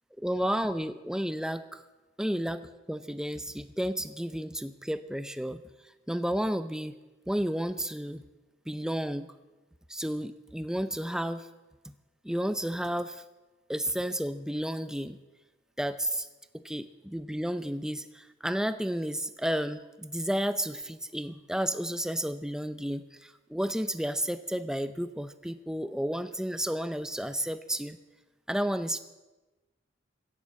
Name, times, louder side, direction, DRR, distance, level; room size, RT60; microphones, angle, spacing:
voice 1, 0.2-1.8 2.2-5.6 6.1-7.0 7.3-8.2 8.7-9.3 9.9-11.5 11.8-11.9 12.2-13.2 13.7-15.2 15.8-16.3 16.5-28.0 28.5-29.0, equal, 5° right, 11 dB, 0.5 m, -32 dB
16.5 x 9.8 x 7.5 m, 1.1 s
head